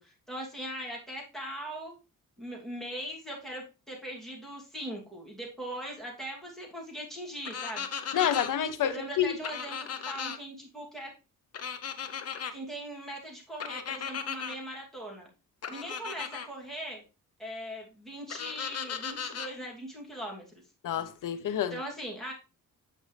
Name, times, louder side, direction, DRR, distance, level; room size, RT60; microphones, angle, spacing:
voice 1, 0.0-1.9 2.4-7.9 8.8-11.1 12.5-15.3 15.7-17.0 17.4-20.6 21.7-22.3, right 1 dB, ahead, 2.6 m, -40 dB
sound 1, 7.4-8.5 9.4-10.4 11.5-12.5 13.6-14.6 15.6-16.5 18.3-19.5, left 7 dB, 45° left, 0.8 m, -36 dB
voice 2, 8.1-9.4 20.8-21.8, left 9 dB, 70° left, 0.9 m, -28 dB
8.5 x 5.4 x 3.3 m
wide cardioid pair, 140°, 33 cm